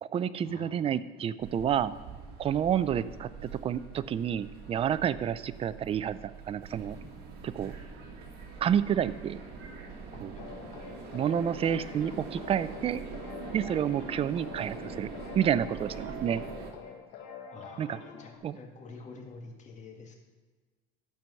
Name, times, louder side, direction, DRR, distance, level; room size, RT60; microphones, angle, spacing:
voice 1, 0.0-1.9 2.4-3.3 3.6-7.0 7.4-7.7 8.6-9.4 10.2-10.4 11.1-13.0 13.5-15.1 15.3-16.4 17.8-18.0 18.4-18.6, right 9 dB, 30° right, 15 dB, 0.4 m, -29 dB
sound 1, 1.4-16.7, right 4 dB, 60° right, 1.8 m, -43 dB
voice 2, 10.1-10.7 17.5-20.1, left 3 dB, 40° left, 2 dB, 1.8 m, -48 dB
sound 2, 10.4-18.4, left 6 dB, 85° left, 1.5 m, -46 dB
13.0 x 4.7 x 5.5 m, 1.4 s
supercardioid pair, 110°, 18 cm